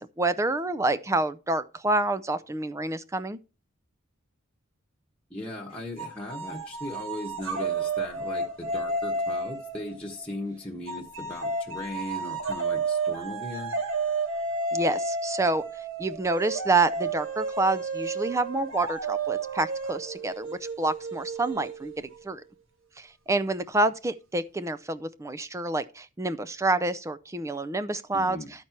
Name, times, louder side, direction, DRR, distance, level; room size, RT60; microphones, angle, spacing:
voice 1, 0.0-3.4 14.7-15.6 16.0-22.4 23.0-28.4, right 2 dB, 15° right, 0.4 m, -28 dB
voice 2, 5.3-13.7 28.1-28.5, left 1 dB, 5° left, 1.3 m, -38 dB
sound 1, 6.0-10.3 10.9-22.2, right 3 dB, 75° right, 1.4 m, -32 dB
12.5 x 4.4 x 4.4 m
head